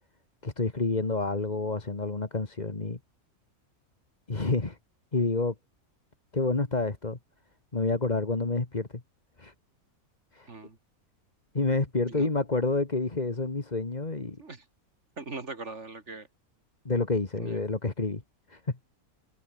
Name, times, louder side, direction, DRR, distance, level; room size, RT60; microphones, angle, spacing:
voice 1, 0.4-3.0 4.3-4.8 5.1-5.5 6.3-7.2 7.7-8.9 9.4-9.5 10.3-10.5 11.5-14.4 16.9-18.2 18.5-18.6, left 3 dB, 30° left, 2.0 m, -28 dB
voice 2, 10.5-10.8 12.1-12.3 14.4-14.7 15.2-16.3 17.4-17.6, right 3 dB, 50° right, 2.8 m, -41 dB
omnidirectional pair, 1.5 m